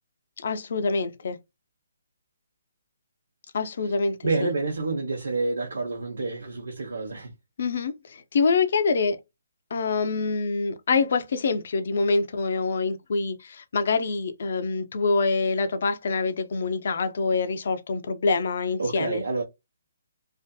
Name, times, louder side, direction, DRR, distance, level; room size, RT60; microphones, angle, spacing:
voice 1, 0.4-1.4 3.5-4.5 7.6-9.2 9.7-19.2, left 4 dB, 55° left, 0.5 m, -25 dB
voice 2, 4.2-7.3 18.8-19.4, right 3 dB, 80° right, 0.8 m, -28 dB
2.6 x 2.4 x 2.3 m
hypercardioid pair, 170°, 0 cm